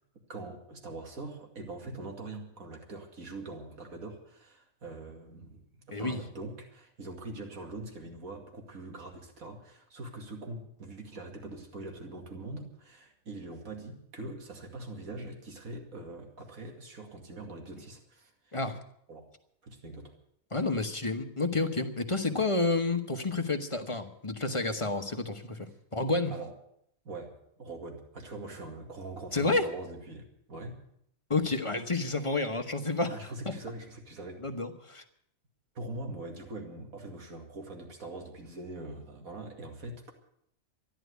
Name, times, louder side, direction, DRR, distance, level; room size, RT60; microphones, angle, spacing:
voice 1, 0.3-18.6 19.1-19.3 19.6-20.1 26.3-26.5 27.0-30.8 33.1-34.4 35.7-40.1, right 2 dB, 85° right, 3 dB, 2.7 m, -43 dB
voice 2, 5.9-6.2 18.5-18.8 20.5-26.3 29.3-29.7 31.3-33.1 33.4-33.5 34.4-35.0, left 3 dB, 25° left, 7 dB, 1.1 m, -30 dB
13.5 x 11.5 x 8.1 m, 0.71 s
omnidirectional pair, 1.4 m